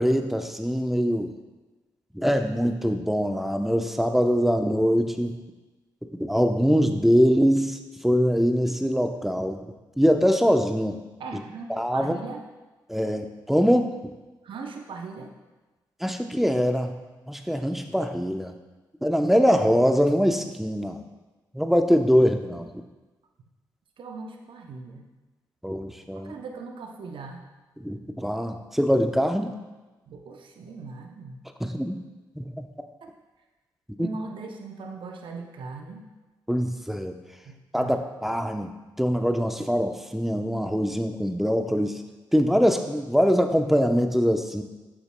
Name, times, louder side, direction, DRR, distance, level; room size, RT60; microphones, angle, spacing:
voice 1, 0.0-1.3 2.1-5.4 6.2-9.6 10.0-11.0 11.7-12.2 12.9-14.1 16.0-17.0 17.3-18.5 19.0-21.0 21.5-22.7 25.6-26.3 27.8-29.5 31.6-32.0 32.4-32.7 34.0-34.1 36.5-37.2 37.7-38.7 39.0-42.0 42.3-44.6, equal, 5° right, 5 dB, 0.8 m, -23 dB
voice 2, 11.2-11.7 11.9-12.4 14.4-15.3 24.0-25.0 26.2-27.4 30.1-31.4 33.0-33.1 34.0-36.1 37.4-38.0 41.7-41.8, right 4 dB, 65° right, 3 dB, 0.7 m, -39 dB
9.2 x 6.9 x 2.2 m, 1.2 s
supercardioid pair, 40°, 9 cm